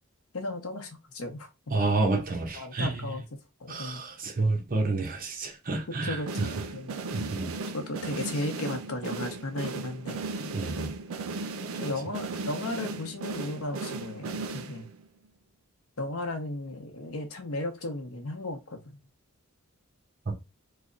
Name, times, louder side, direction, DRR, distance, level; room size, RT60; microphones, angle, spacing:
voice 1, 0.3-1.7 2.6-3.3 3.6-4.0 5.9-7.0 7.7-10.2 11.8-14.9 16.0-19.0, left 2 dB, 85° left, 0.8 m, -35 dB
voice 2, 1.7-3.0 3.7-6.5 7.1-7.5 10.4-10.9 20.3-20.4, right 3 dB, 45° right, 0.8 m, -29 dB
sound 1, 6.3-15.1, right 3 dB, 80° right, 0.5 m, -36 dB
3.3 x 2.2 x 3.7 m
head